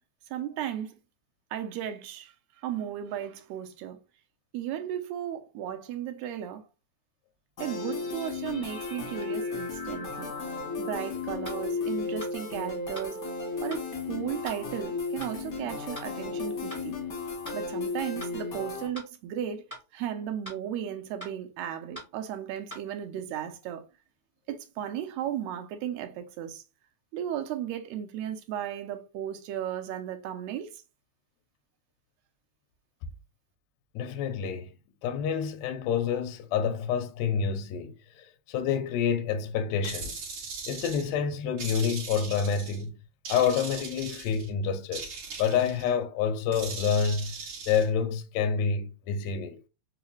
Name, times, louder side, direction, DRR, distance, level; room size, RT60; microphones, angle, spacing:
voice 1, 0.3-1.0 1.5-2.3 2.6-4.0 4.5-6.6 7.6-10.3 10.8-13.2 13.6-17.0 17.5-19.6 19.9-23.9 24.5-26.6 27.1-30.7, right 10 dB, 75° right, 1.7 m, -35 dB
sound 1, 7.6-18.9, left 4 dB, 55° left, 0.9 m, -34 dB
sound 2, 11.4-11.6 12.2-12.4 12.9-13.1 13.7-13.9 14.4-14.6 15.2-15.4 15.9-16.1 16.7-16.9 17.4-17.6 18.2-18.4 18.9-19.1 19.7-19.9 20.4-20.6 21.2-21.4 21.9-22.1 22.7-22.8, right 1 dB, 15° right, 0.7 m, -42 dB
voice 2, 33.9-34.7 35.0-40.2 40.7-43.0 43.3-45.1 45.4-47.3 47.7-49.6, left 7 dB, 80° left, 1.6 m, -28 dB
sound 3, 39.8-41.1 41.6-42.8 43.3-44.5 44.9-45.9 46.5-47.9, right 4 dB, 55° right, 1.4 m, -39 dB
4.7 x 2.1 x 3.0 m
omnidirectional pair, 3.4 m